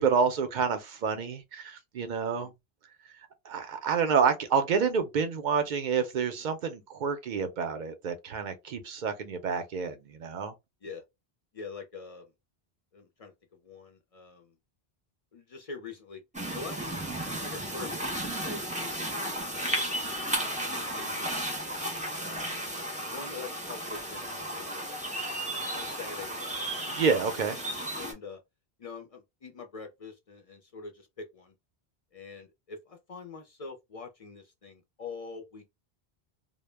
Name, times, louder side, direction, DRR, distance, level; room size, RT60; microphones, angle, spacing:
voice 1, 0.0-2.5 3.4-10.5 26.9-27.6, right 6 dB, 55° right, 0.6 m, -28 dB
voice 2, 11.5-12.3 12.9-13.3 13.6-14.5 15.3-16.2 16.5-16.8 17.2-19.3 19.6-21.3 22.2-22.6 23.0-24.9 25.7-26.8 28.0-28.4 28.8-31.5 32.1-35.7, left 4 dB, 50° left, 0.4 m, -44 dB
sound 1, 16.3-28.1, right 1 dB, 10° right, 0.4 m, -34 dB
2.1 x 2.0 x 3.2 m
omnidirectional pair, 1.0 m